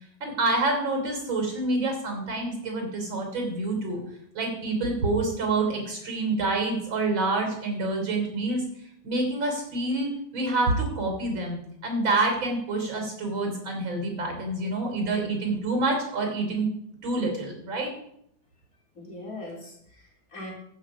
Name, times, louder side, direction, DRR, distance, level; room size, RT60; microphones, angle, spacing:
voice 1, 0.2-4.0 4.3-8.6 9.0-16.7 17.0-17.9, right 2 dB, 80° right, 2 dB, 4.1 m, -27 dB
voice 2, 18.9-20.5, left 1 dB, 45° left, -2 dB, 3.9 m, -41 dB
15.0 x 8.2 x 4.9 m, 0.73 s
omnidirectional pair, 2.1 m